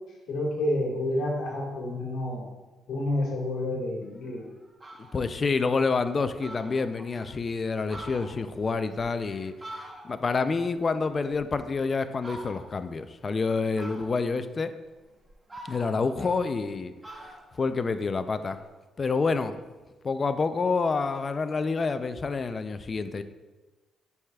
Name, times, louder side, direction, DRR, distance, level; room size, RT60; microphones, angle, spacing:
voice 1, 0.3-2.4 2.9-4.5, left 1 dB, 80° left, -2 dB, 1.6 m, -29 dB
Fowl, 4.2-4.3 4.6-5.2 5.7-5.8 6.1-6.2 6.4-7.3 7.7-10.4 10.7-11.7 12.2-12.9 13.8-14.4 15.0-16.7 17.0-18.6, right 1 dB, 20° right, 0.9 m, -45 dB
voice 2, 5.1-14.7 15.7-16.9 17.6-18.6 19.0-19.6 20.0-23.2, left 4 dB, 35° left, 10 dB, 0.4 m, -28 dB
9.6 x 4.8 x 2.3 m, 1.2 s
cardioid pair, 90°, 0 cm